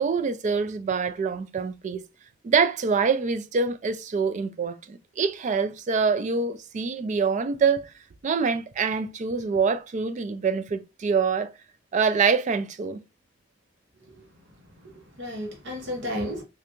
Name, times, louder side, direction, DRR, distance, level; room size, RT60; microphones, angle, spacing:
voice 1, 0.0-2.0 2.4-7.9 8.2-11.5 11.9-13.0, right 5 dB, 40° right, 0.3 m, -25 dB
voice 2, 14.8-16.4, equal, 65° right, 1.0 m, -33 dB
3.2 x 2.4 x 3.0 m
head